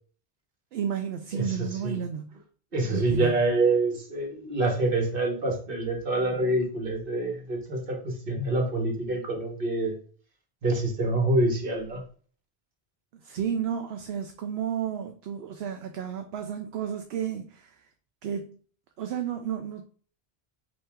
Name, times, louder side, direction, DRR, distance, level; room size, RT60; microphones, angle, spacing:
voice 1, 0.7-2.3 2.9-3.4 13.2-17.8 18.2-18.6 19.0-19.8, right 8 dB, 80° right, 0.8 m, -32 dB
voice 2, 1.3-2.0 2.7-9.9 10.6-12.0, right 2 dB, 60° right, 1.5 m, -26 dB
5.4 x 2.8 x 3.6 m
omnidirectional pair, 1.0 m